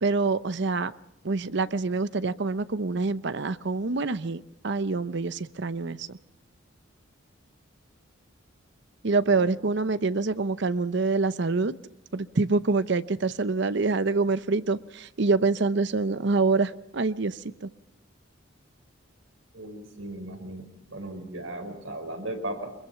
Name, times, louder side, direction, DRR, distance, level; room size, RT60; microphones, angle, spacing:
voice 1, 0.0-0.9 1.2-6.2 9.0-11.7 12.1-17.7, right 3 dB, 60° right, 14 dB, 0.8 m, -26 dB
voice 2, 19.5-22.7, right 1 dB, 85° right, 5 dB, 5.0 m, -37 dB
23.5 x 22.0 x 5.8 m, 0.85 s
head